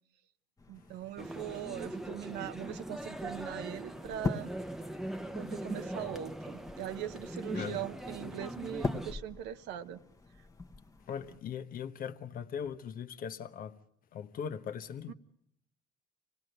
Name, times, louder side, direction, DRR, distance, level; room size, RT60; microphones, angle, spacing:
sound 1, 0.6-11.4, left 3 dB, 20° left, 1.1 m, -43 dB
voice 1, 0.7-4.5 5.3-10.0 15.1-15.2, right 12 dB, 90° right, 1.0 m, -41 dB
sound 2, 1.2-9.1, right 1 dB, ahead, 0.9 m, -41 dB
voice 2, 11.1-13.8 14.1-15.1, left 7 dB, 60° left, 1.1 m, -39 dB
26.0 x 19.0 x 7.9 m
cardioid pair, 110°, 17 cm